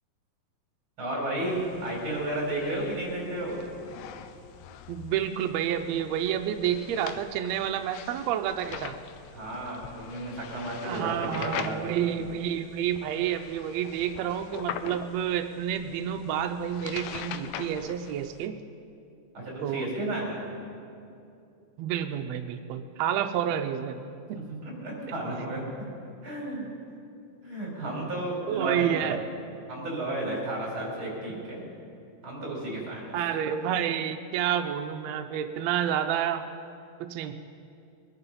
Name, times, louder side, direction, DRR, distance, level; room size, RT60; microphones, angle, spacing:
voice 1, 1.0-3.6 9.3-12.0 19.3-20.4 24.3-25.6 26.2-26.7 27.4-29.2 29.7-31.6 32.2-33.2, right 1 dB, 40° right, -3 dB, 5.1 m, -33 dB
sound 1, 1.5-18.5, left 9 dB, 85° left, 2.2 m, -43 dB
voice 2, 4.9-9.0 10.8-18.5 19.6-19.9 21.8-24.0 24.3-24.4 28.5-29.2 33.1-36.5 37.0-37.3, right 9 dB, 85° right, 7 dB, 1.5 m, -29 dB
23.0 x 9.9 x 5.5 m, 2.5 s
omnidirectional pair, 3.7 m